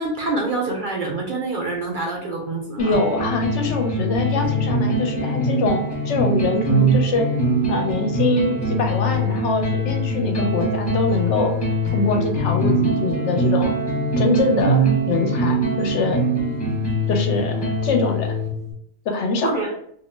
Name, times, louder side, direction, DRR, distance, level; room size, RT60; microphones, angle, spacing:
voice 1, 0.0-3.0 19.4-19.7, right 3 dB, 55° right, -1 dB, 0.6 m, -26 dB
voice 2, 2.8-7.3 7.7-11.5 11.9-13.7 14.2-16.2 17.1-18.4 19.1-19.5, left 3 dB, 75° left, 4 dB, 0.9 m, -23 dB
sound 1, 2.8-18.7, right 1 dB, 25° left, 0.7 m, -22 dB
2.5 x 2.1 x 3.1 m, 0.70 s
omnidirectional pair, 1.2 m